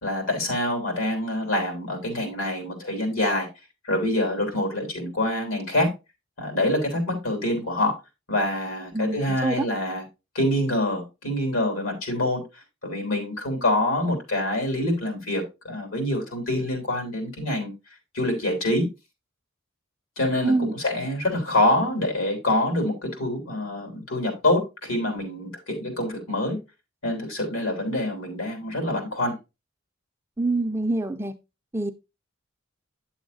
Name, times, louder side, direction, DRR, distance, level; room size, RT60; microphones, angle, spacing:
voice 1, 0.0-3.5 3.8-5.9 6.4-7.9 8.3-10.0 10.3-12.4 12.8-17.7 18.1-18.9 20.2-26.6 27.0-29.3, left 1 dB, 85° left, 3 dB, 3.3 m, -26 dB
voice 2, 8.9-9.7 20.4-20.7 30.4-31.3 31.7-31.9, right 2 dB, 10° right, 7 dB, 0.4 m, -25 dB
9.3 x 7.1 x 2.6 m, 0.25 s
head